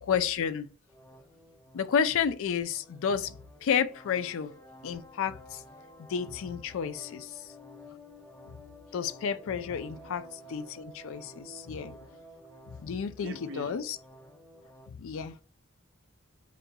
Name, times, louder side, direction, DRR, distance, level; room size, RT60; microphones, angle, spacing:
voice 1, 0.0-0.7 1.7-4.5 4.8-5.6 6.0-7.3 8.9-12.0 12.8-14.0 15.0-15.4, left 7 dB, 65° left, 0.4 m, -31 dB
sound 1, 0.9-14.9, equal, 10° left, 0.6 m, -52 dB
voice 2, 12.9-13.8 15.2-15.4, right 2 dB, 60° right, 0.4 m, -45 dB
4.2 x 3.8 x 2.2 m
head